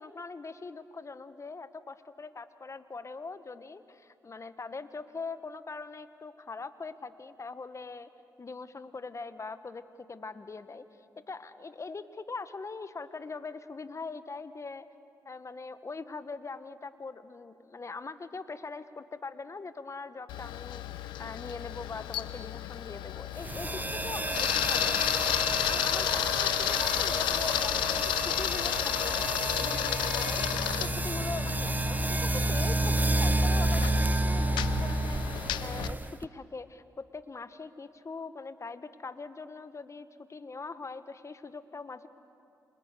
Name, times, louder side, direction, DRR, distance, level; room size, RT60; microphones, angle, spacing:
voice 1, 0.0-8.1 8.4-10.9 11.3-14.9 15.2-30.4 30.8-42.1, left 4 dB, 40° left, 12 dB, 1.4 m, -42 dB
Camera, 20.3-35.9, left 13 dB, 85° left, 0.7 m, -32 dB
sound 1, 23.4-36.3, right 2 dB, 20° right, 0.8 m, -30 dB
29.0 x 26.0 x 6.8 m, 2.6 s
supercardioid pair, 45°, 8 cm